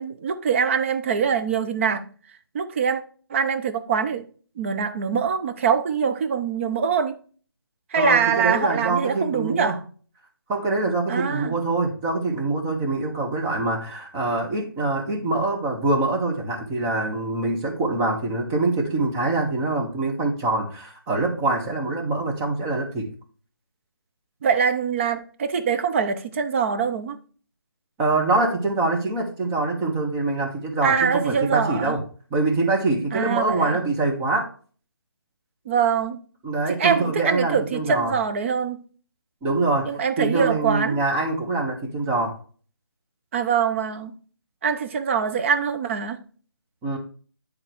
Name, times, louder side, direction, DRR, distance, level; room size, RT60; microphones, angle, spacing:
voice 1, 0.0-2.0 2.5-3.0 3.3-4.3 4.6-7.2 7.9-9.8 11.1-11.6 24.4-27.2 30.8-32.0 33.1-33.8 35.7-36.2 36.7-38.8 39.9-41.0 43.3-44.1 44.6-46.2, right 6 dB, 30° right, 0.8 m, -23 dB
voice 2, 8.0-9.8 10.5-23.1 28.0-32.0 32.3-34.5 36.4-38.1 39.4-39.9 40.2-42.3 46.8-47.0, right 2 dB, 15° right, 1.3 m, -24 dB
10.0 x 3.8 x 4.6 m
figure-of-eight pair, 160°, 13 cm